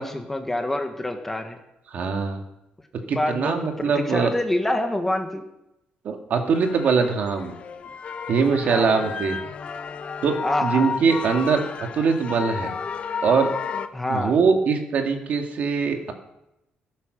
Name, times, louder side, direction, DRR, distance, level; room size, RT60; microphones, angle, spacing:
voice 1, 0.0-1.6 3.0-5.4 8.6-9.0 10.4-10.9 13.9-14.4, left 1 dB, 10° left, 5 dB, 1.3 m, -27 dB
voice 2, 1.9-2.4 3.1-4.3 6.0-7.5 8.3-9.4 10.2-11.6 11.9-12.7 13.2-13.5 14.1-16.1, right 5 dB, 50° right, 4 dB, 2.1 m, -22 dB
sound 1, 6.5-13.9, left 5 dB, 40° left, 0.9 m, -32 dB
16.5 x 8.7 x 6.7 m, 0.88 s
cardioid pair, 150°, 3 cm